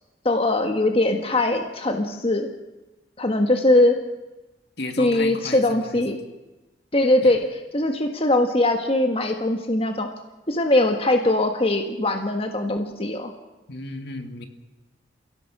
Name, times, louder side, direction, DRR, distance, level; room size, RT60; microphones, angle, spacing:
voice 1, 0.2-2.5 3.2-4.0 5.0-6.2 6.9-10.1 10.5-13.3, left 1 dB, 30° left, 4 dB, 1.7 m, -21 dB
voice 2, 4.8-6.2 7.2-7.3 13.7-14.5, left 2 dB, 60° left, 6 dB, 2.2 m, -34 dB
30.0 x 17.0 x 6.3 m, 1.1 s
head